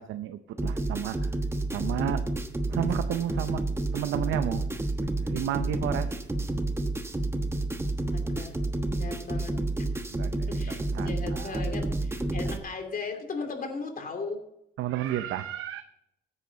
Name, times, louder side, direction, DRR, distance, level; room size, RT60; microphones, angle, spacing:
voice 1, 0.0-1.4 1.7-2.2 2.7-3.6 3.9-4.8 5.2-6.1 10.1-10.3 10.7-11.6 12.5-12.6 14.8-15.8, right 12 dB, 85° right, 10 dB, 0.7 m, -32 dB
sound 1, 0.6-12.6, right 2 dB, 10° right, 1.2 m, -30 dB
voice 2, 1.7-2.2 8.1-8.6 8.9-9.6 10.5-14.4, left 4 dB, 45° left, 5 dB, 2.9 m, -37 dB
15.5 x 8.9 x 3.9 m, 0.81 s
cardioid pair, 90°, 20 cm